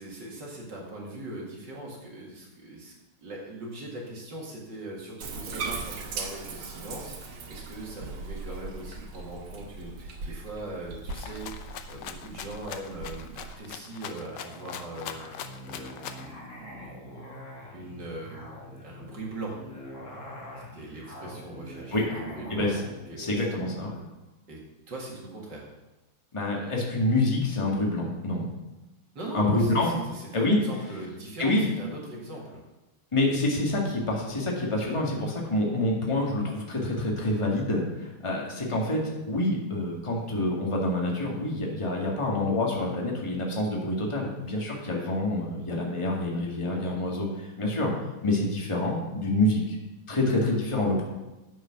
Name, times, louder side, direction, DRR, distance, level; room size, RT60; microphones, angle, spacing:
voice 1, 0.0-2.9 3.2-16.4 17.7-18.5 18.8-19.6 20.6-22.7 23.1-23.5 24.5-24.6 24.9-25.7 29.1-32.6, right 2 dB, 55° right, -3 dB, 2.7 m, -40 dB
Bathtub (filling or washing), 5.2-13.5, right 4 dB, 80° right, 2.2 m, -39 dB
Rattle (instrument), 11.1-16.3, left 8 dB, 65° left, 1.2 m, -41 dB
Musical instrument, 13.9-24.1, equal, 35° left, 4.0 m, -44 dB
voice 2, 23.2-23.9 26.3-28.4 29.3-30.0 30.3-30.6 31.4-31.6 33.1-47.9 48.2-49.8 50.1-51.0, left 1 dB, 15° left, -2 dB, 1.8 m, -27 dB
9.0 x 7.7 x 5.9 m, 1.0 s
omnidirectional pair, 2.3 m